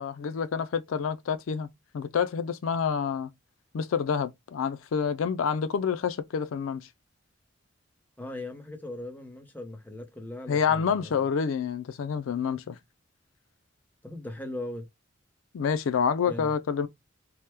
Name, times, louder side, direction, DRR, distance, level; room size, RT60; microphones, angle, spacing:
voice 1, 0.0-1.7 1.9-3.3 3.7-6.9 10.5-12.8 15.5-16.9, left 6 dB, 85° left, 0.4 m, -28 dB
voice 2, 8.2-11.2 14.0-14.9 16.3-16.5, left 1 dB, 10° left, 0.7 m, -39 dB
3.0 x 2.1 x 3.3 m
head